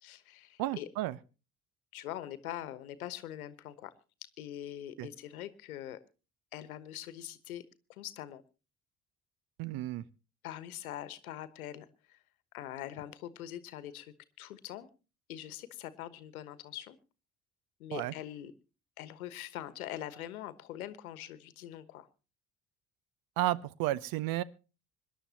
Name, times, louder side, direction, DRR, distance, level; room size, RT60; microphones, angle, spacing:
voice 1, 0.0-0.9 1.9-3.9 4.4-6.0 6.5-7.6 7.9-8.4 10.4-12.2 12.5-14.9 15.3-17.0 17.8-18.5 19.0-22.1, left 12 dB, 75° left, 15 dB, 1.2 m, -43 dB
voice 2, 0.6-1.2 5.0-5.1 9.6-10.0 17.9-18.1 23.4-24.4, right 15 dB, 55° right, 20 dB, 0.9 m, -32 dB
25.5 x 11.5 x 2.8 m, 0.33 s
figure-of-eight pair, 55°, 43 cm